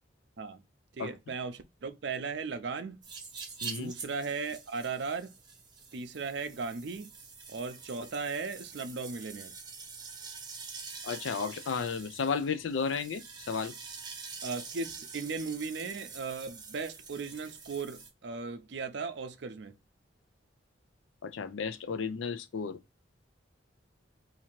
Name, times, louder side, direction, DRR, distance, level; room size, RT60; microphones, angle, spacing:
voice 1, 0.9-3.0 3.6-5.3 5.9-7.1 7.5-9.5 14.4-19.8, right 4 dB, 65° right, 0.5 m, -37 dB
sound 1, 3.0-18.1, right 5 dB, 25° right, 0.8 m, -46 dB
voice 2, 3.6-3.9 11.0-13.7 21.2-22.8, left 5 dB, 80° left, 0.4 m, -33 dB
2.8 x 2.5 x 4.3 m
head